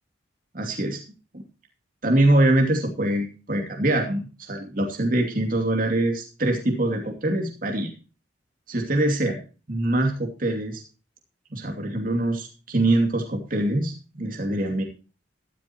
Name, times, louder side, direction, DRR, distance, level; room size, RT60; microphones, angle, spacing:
voice 1, 0.5-1.0 1.3-1.4 2.0-7.9 8.7-9.4 9.7-10.8 11.5-14.8, right 1 dB, 45° right, 2 dB, 2.6 m, -24 dB
14.5 x 13.0 x 3.0 m, 0.35 s
head